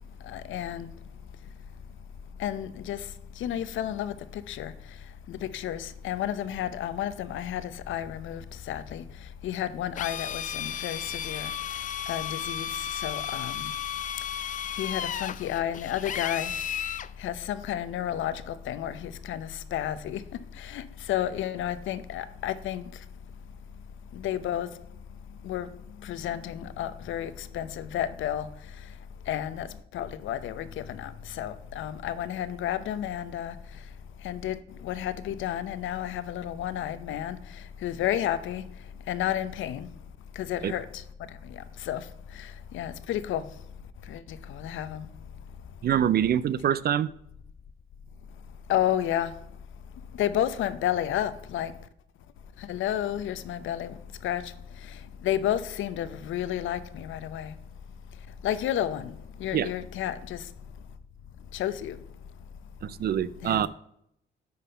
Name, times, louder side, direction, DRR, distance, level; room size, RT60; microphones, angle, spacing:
voice 1, 0.2-0.9 2.4-5.0 5.3-11.5 12.1-13.7 14.7-16.5 17.2-20.2 20.5-23.0 24.1-24.7 25.4-25.7 26.0-28.5 28.8-28.9 29.3-33.8 34.2-38.6 39.1-39.9 40.3-43.5 44.1-45.1 48.7-49.4 50.1-51.7 52.6-57.5 58.4-60.5 61.5-62.0 63.4-63.7, left 11 dB, 80° left, 0.7 m, -32 dB
Drill, 9.9-17.1, left 9 dB, 40° left, 0.4 m, -34 dB
voice 2, 45.8-47.1 59.5-59.7 62.8-63.7, right 9 dB, 50° right, 0.4 m, -25 dB
10.5 x 4.2 x 5.5 m
cardioid pair, 90°, 20 cm